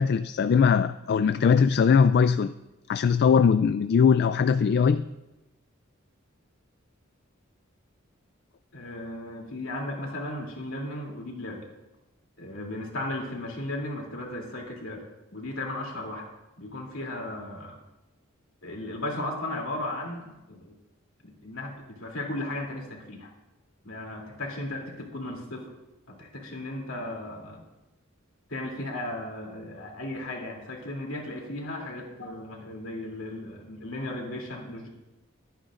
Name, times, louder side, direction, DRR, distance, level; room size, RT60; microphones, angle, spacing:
voice 1, 0.0-2.5 2.9-5.1, left 6 dB, 50° left, 12 dB, 0.3 m, -21 dB
voice 2, 8.7-11.7 12.4-15.0 15.3-16.2 16.6-17.8 18.6-20.7 21.2-23.3 23.8-25.7 26.1-27.6 28.5-34.9, left 1 dB, 70° left, 0 dB, 2.9 m, -35 dB
23.5 x 9.1 x 2.5 m, 0.99 s
head